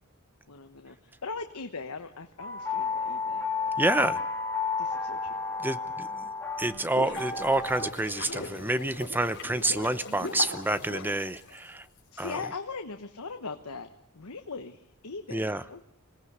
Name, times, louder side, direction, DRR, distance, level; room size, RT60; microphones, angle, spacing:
voice 1, 0.5-1.0 1.2-3.5 4.8-5.3 6.6-6.9 12.1-15.9, left 4 dB, 75° left, 6 dB, 1.2 m, -40 dB
sound 1, 2.4-7.9, left 4 dB, 10° left, 2.1 m, -32 dB
voice 2, 3.8-4.2 5.6-6.3 6.6-11.9 12.2-12.4 15.3-15.6, right 1 dB, 10° right, 13 dB, 0.8 m, -28 dB
sound 2, 6.6-12.0, left 3 dB, 55° left, 4.0 m, -39 dB
26.0 x 18.0 x 8.1 m, 0.80 s
head